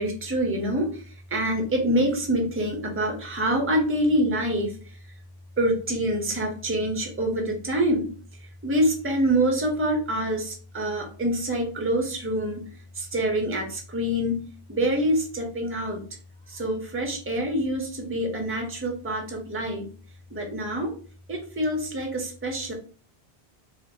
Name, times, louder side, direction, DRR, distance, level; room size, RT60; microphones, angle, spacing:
voice 1, 0.0-5.0 5.6-8.1 8.6-12.7 12.9-16.0 16.5-19.9 20.3-20.9 21.3-22.7, right 1 dB, 15° right, 1 dB, 0.6 m, -26 dB
2.8 x 2.6 x 3.0 m, 0.40 s
omnidirectional pair, 1.0 m